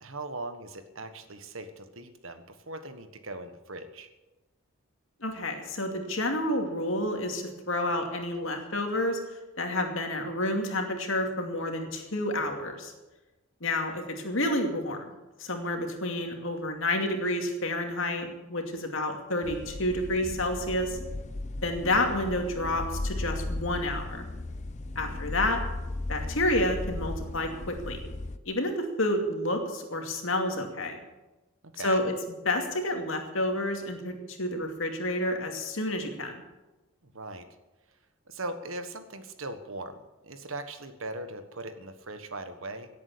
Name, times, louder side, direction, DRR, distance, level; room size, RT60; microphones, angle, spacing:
voice 1, 0.0-4.1 24.9-25.2 31.6-32.0 37.0-37.5 38.3-42.9, right 2 dB, 65° right, 9 dB, 1.5 m, -40 dB
voice 2, 5.2-9.2 9.6-12.9 13.6-15.1 15.4-21.0 21.6-24.3 25.0-25.6 26.1-28.0 28.5-31.0 31.8-32.1 32.4-36.3, left 1 dB, 65° left, 4 dB, 2.5 m, -29 dB
sound 1, 19.4-28.4, left 2 dB, 35° left, 0.6 m, -36 dB
17.5 x 8.6 x 8.6 m, 1.1 s
head